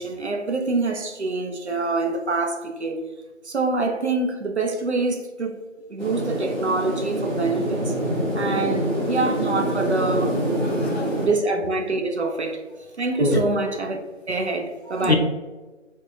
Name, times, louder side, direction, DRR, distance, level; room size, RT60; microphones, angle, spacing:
voice 1, 0.0-3.0 3.4-7.9 8.3-10.4 11.2-12.6 13.0-14.0 14.3-15.2, right 3 dB, 60° right, 0.5 m, -25 dB
sound 1, 6.0-11.3, right 1 dB, 35° right, 1.0 m, -25 dB
voice 2, 10.6-11.3 13.2-13.4 15.0-15.2, left 3 dB, 55° left, 0.6 m, -24 dB
4.5 x 2.2 x 2.4 m
figure-of-eight pair, 175°, 38 cm